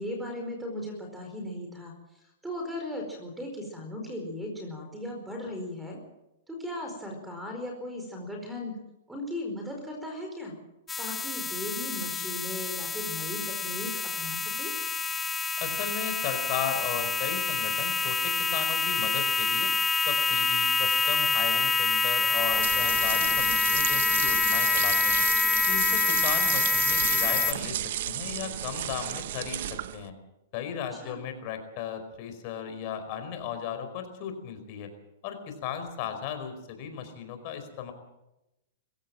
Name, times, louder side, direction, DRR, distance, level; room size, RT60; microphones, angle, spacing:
voice 1, 0.0-6.0 6.5-8.8 9.1-10.5 11.0-14.7 30.9-31.2, left 1 dB, 5° right, 3 dB, 4.6 m, -37 dB
sound 1, 10.9-27.5, left 4 dB, 15° left, 1.3 m, -26 dB
voice 2, 15.6-19.7 20.0-25.2 25.7-30.1 30.5-34.9 35.2-37.9, left 8 dB, 45° left, 8 dB, 4.9 m, -36 dB
sound 2, 22.3-30.1, right 12 dB, 65° right, 1.0 m, -33 dB
22.0 x 16.5 x 7.7 m, 0.92 s
hypercardioid pair, 135°, 0 cm